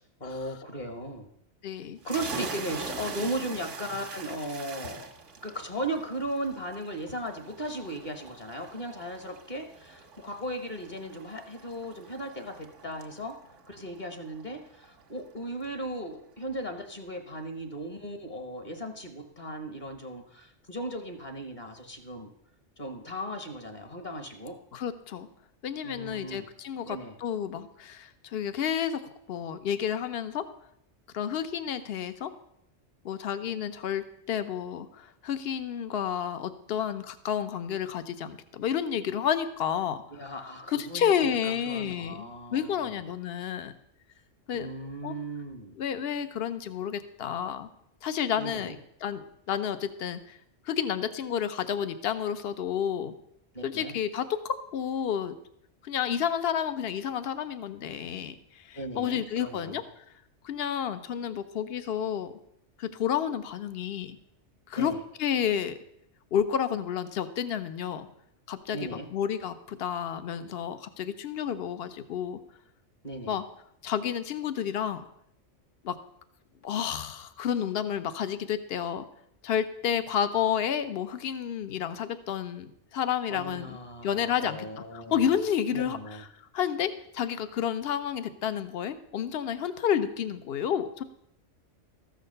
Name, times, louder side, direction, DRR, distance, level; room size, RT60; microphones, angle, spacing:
voice 1, 0.2-1.3 2.0-5.1 5.4-13.3 13.7-22.3 22.8-24.6 25.8-26.5 26.8-27.2 40.1-43.1 44.5-45.7 48.4-48.8 53.5-53.9 58.7-59.8 64.8-65.0 68.7-69.1 73.0-73.4 83.3-85.3 85.7-86.2, right 1 dB, 40° left, 6 dB, 1.4 m, -37 dB
voice 2, 1.6-2.0 24.7-25.3 25.6-29.0 29.3-30.4 31.1-32.3 33.0-40.3 40.7-43.7 44.5-44.7 45.0-45.1 45.7-47.7 48.0-48.8 49.0-50.4 50.7-53.1 53.6-55.3 55.8-60.0 60.4-62.3 62.8-64.2 64.7-64.9 65.2-65.8 66.3-68.1 68.5-72.4 73.3-73.4 73.8-75.0 75.8-76.0 76.6-79.0 79.4-83.8 84.0-86.3 86.5-91.0, left 8 dB, 60° left, 11 dB, 0.9 m, -30 dB
sound 1, 2.0-15.4, right 4 dB, 90° right, 1.5 m, -43 dB
13.5 x 6.5 x 6.6 m, 0.74 s
omnidirectional pair, 1.2 m